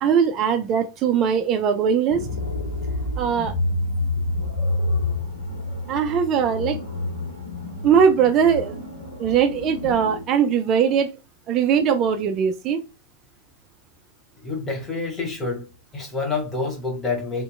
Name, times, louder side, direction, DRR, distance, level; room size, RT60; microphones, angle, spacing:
voice 1, 0.0-2.3 3.2-3.5 5.9-6.8 7.8-8.8 9.2-11.1 11.5-12.8, right 7 dB, 35° right, 0.3 m, -20 dB
sound 1, 2.1-10.2, left 2 dB, 80° left, 0.8 m, -28 dB
voice 2, 14.4-15.7 15.9-17.4, left 3 dB, 20° left, 1.1 m, -27 dB
2.7 x 2.1 x 2.4 m
figure-of-eight pair, 90°, 0 cm